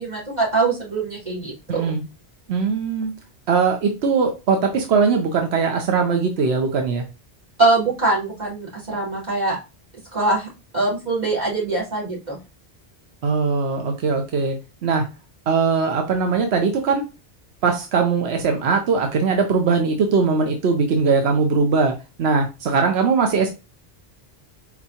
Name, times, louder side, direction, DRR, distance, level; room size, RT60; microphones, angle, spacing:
voice 1, 0.0-1.8 7.6-9.6 10.1-10.5 10.7-12.4, right 3 dB, 45° right, -6 dB, 2.8 m, -22 dB
voice 2, 1.7-2.0 2.5-3.1 3.5-7.0 13.2-14.6 14.8-15.1 15.5-17.0 17.6-21.9 22.2-23.5, right 5 dB, 90° right, 4 dB, 1.0 m, -20 dB
4.5 x 4.3 x 2.8 m, 0.28 s
omnidirectional pair, 1.0 m